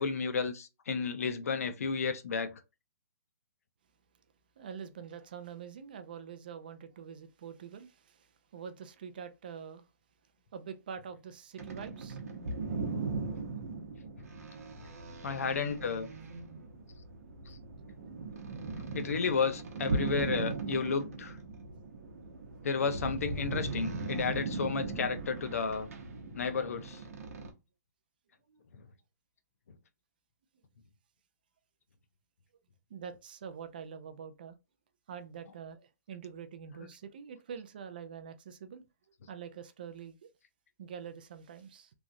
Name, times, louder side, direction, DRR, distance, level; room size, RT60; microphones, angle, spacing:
voice 1, 0.0-2.5 13.2-13.3 14.8-14.9 15.2-16.1 17.5-17.6 18.9-21.4 22.6-25.9 26.3-27.0 36.8-36.9, left 5 dB, 55° left, 0.5 m, -32 dB
voice 2, 4.6-8.3 8.5-9.9 10.5-12.2 28.5-28.6 32.9-34.6 35.1-38.8 39.3-40.2 40.8-41.9, right 7 dB, 30° right, 0.3 m, -45 dB
sound 1, 11.6-27.5, right 3 dB, 55° right, 0.9 m, -38 dB
3.1 x 2.4 x 2.6 m
hypercardioid pair, 175°, 9 cm